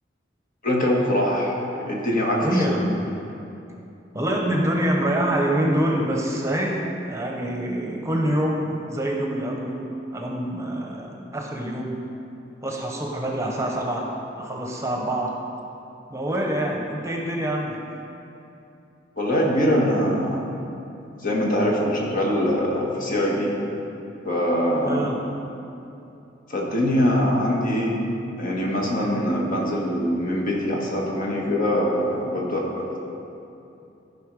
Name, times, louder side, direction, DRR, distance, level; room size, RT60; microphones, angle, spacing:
voice 1, 0.6-2.6 19.2-20.5 21.2-23.5 24.2-25.1 26.5-28.0 28.4-33.0, equal, 50° left, -3 dB, 1.8 m, -23 dB
voice 2, 2.4-3.0 4.1-9.8 10.1-12.0 12.6-14.1 14.4-15.3 16.1-17.8 24.8-25.2, right 1 dB, 15° right, 0 dB, 1.0 m, -25 dB
14.5 x 5.6 x 4.8 m, 2.8 s
head